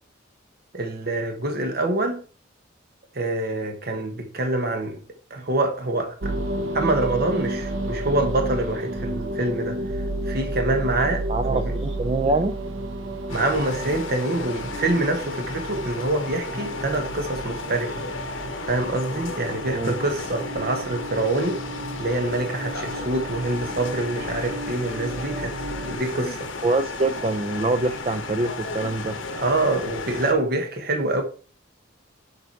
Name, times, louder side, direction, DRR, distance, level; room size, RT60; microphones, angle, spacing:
voice 1, 0.7-2.2 3.1-5.0 5.3-6.3 6.7-9.8 10.3-11.6 13.3-18.1 18.7-21.6 22.0-25.5 25.9-26.5 29.4-31.2, right 2 dB, 50° right, 1.3 m, -25 dB
sound 1, 6.2-26.0, right 1 dB, 85° right, 0.9 m, -32 dB
voice 2, 11.3-12.6 19.7-19.9 26.6-29.2, right 2 dB, 30° right, 0.5 m, -24 dB
sound 2, 13.3-30.3, left 3 dB, 75° left, 1.2 m, -34 dB
6.9 x 4.8 x 4.7 m
head